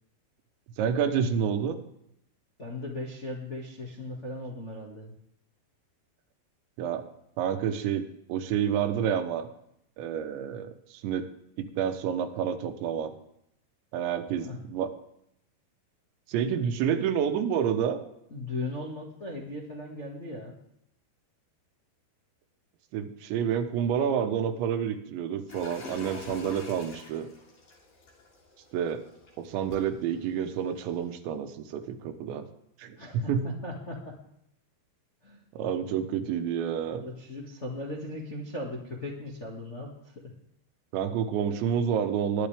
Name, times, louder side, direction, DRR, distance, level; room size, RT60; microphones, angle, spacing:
voice 1, 0.8-1.8 6.8-7.0 7.4-8.0 8.3-9.5 10.0-11.3 11.6-13.1 13.9-14.9 16.3-18.0 22.9-27.3 28.7-29.0 29.4-32.5 32.8-33.5 35.5-37.0 40.9-42.5, right 8 dB, 85° right, 7 dB, 3.3 m, -29 dB
voice 2, 2.6-5.1 14.4-14.6 18.3-20.5 33.0-34.1 35.2-35.4 37.0-39.9, left 2 dB, 80° left, -3 dB, 0.6 m, -37 dB
sound 1, 25.5-31.1, left 3 dB, 55° left, 4.4 m, -47 dB
22.5 x 11.0 x 3.5 m, 0.77 s
omnidirectional pair, 5.1 m